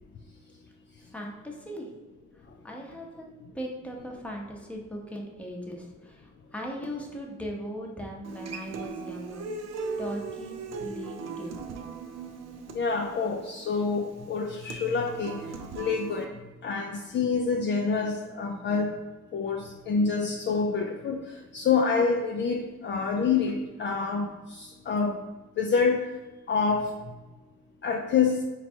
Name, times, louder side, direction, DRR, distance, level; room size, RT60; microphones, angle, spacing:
voice 1, 1.0-1.9 2.3-9.5 10.0-11.6, equal, 5° left, -1 dB, 0.8 m, -39 dB
Human voice / Acoustic guitar, 8.2-16.3, right 5 dB, 60° right, 0.5 m, -38 dB
voice 2, 12.7-15.4 15.8-16.3 16.6-18.9 19.3-25.2 25.6-26.0 26.5-26.9 27.8-28.4, left 5 dB, 40° left, 2 dB, 0.4 m, -27 dB
4.0 x 2.2 x 4.4 m, 1.1 s
cardioid pair, 90°, 30 cm